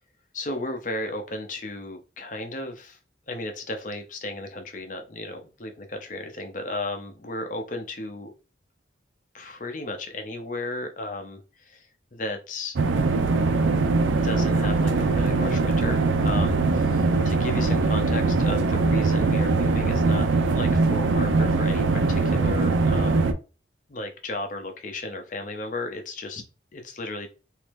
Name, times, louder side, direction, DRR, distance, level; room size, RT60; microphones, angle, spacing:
voice 1, 0.3-3.0 3.3-8.3 9.3-12.8 14.2-20.3 20.5-23.3 23.9-26.4 26.7-27.3, left 2 dB, 45° left, 5 dB, 0.7 m, -34 dB
sound 1, 12.8-23.3, right 3 dB, 90° right, 0.5 m, -22 dB
3.0 x 2.7 x 3.4 m, 0.33 s
head